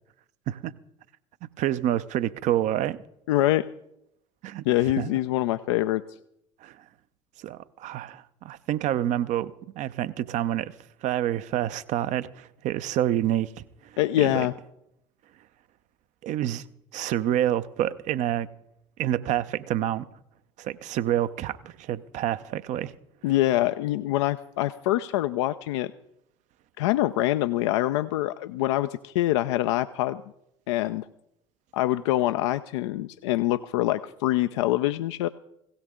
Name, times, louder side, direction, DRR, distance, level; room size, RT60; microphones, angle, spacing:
voice 1, 1.4-3.0 4.4-4.6 5.0-5.2 6.6-6.8 7.4-10.7 11.0-14.5 16.2-16.6 16.9-18.5 19.0-20.0 20.6-22.9, right 12 dB, 50° right, 0.7 m, -28 dB
voice 2, 3.3-3.7 4.7-6.0 14.0-14.5 23.2-25.9 26.8-30.2 30.7-31.1 31.7-35.3, left 15 dB, 65° left, 0.5 m, -25 dB
17.0 x 17.0 x 3.7 m
figure-of-eight pair, 65°, 16 cm